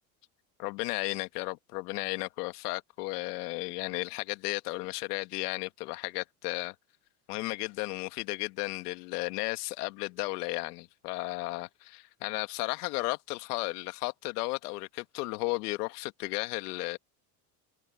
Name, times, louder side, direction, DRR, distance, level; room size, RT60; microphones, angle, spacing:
voice 1, 0.6-6.7 7.3-17.0, left 23 dB, 80° left, 1.8 m, -34 dB
supercardioid pair, 100°, 45 cm